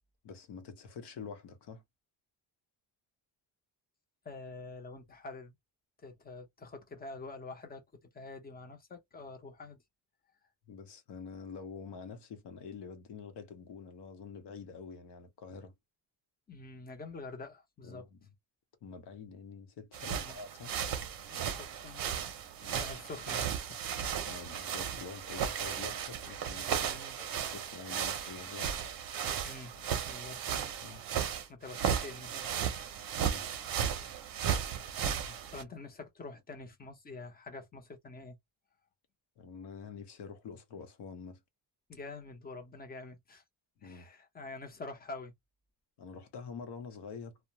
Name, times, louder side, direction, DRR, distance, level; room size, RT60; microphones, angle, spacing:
voice 1, 0.2-1.8 10.7-15.7 17.8-18.2 18.8-20.8 22.6-22.8 24.2-28.7 30.8-31.0 33.2-33.5 35.2-35.4 39.4-41.4 43.8-44.1 46.0-47.4, left 5 dB, 65° left, 0.8 m, -47 dB
voice 2, 4.2-5.5 6.0-7.8 8.1-9.8 16.5-18.1 20.0-20.4 21.3-22.1 22.8-23.8 26.8-27.2 29.4-30.4 30.9-31.1 31.5-32.7 35.5-38.4 41.9-43.4 43.8-45.3, left 3 dB, 20° left, 0.6 m, -46 dB
sound 1, 19.9-35.6, right 8 dB, 50° right, 0.6 m, -35 dB
2.4 x 2.1 x 2.8 m
wide cardioid pair, 175°, 44 cm